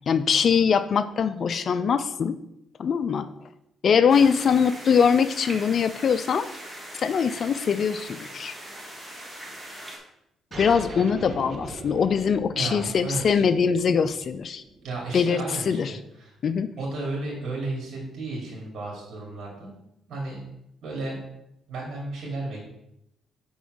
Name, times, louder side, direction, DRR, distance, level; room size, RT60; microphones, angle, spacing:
voice 1, 0.1-2.4 2.8-3.3 3.8-6.5 7.0-8.5 10.5-14.6 15.1-15.9 16.4-16.7, left 6 dB, 55° left, 12 dB, 0.4 m, -22 dB
sound 1, 4.1-10.0, right 1 dB, 10° right, 1.9 m, -41 dB
sound 2, 10.5-15.6, right 2 dB, 40° right, 1.2 m, -41 dB
voice 2, 12.5-13.5 14.8-16.3 16.8-19.7 20.1-20.4 20.8-21.2 21.7-22.6, right 2 dB, 65° right, -2 dB, 2.5 m, -33 dB
5.4 x 4.3 x 6.2 m, 0.80 s
cardioid pair, 90°, 0 cm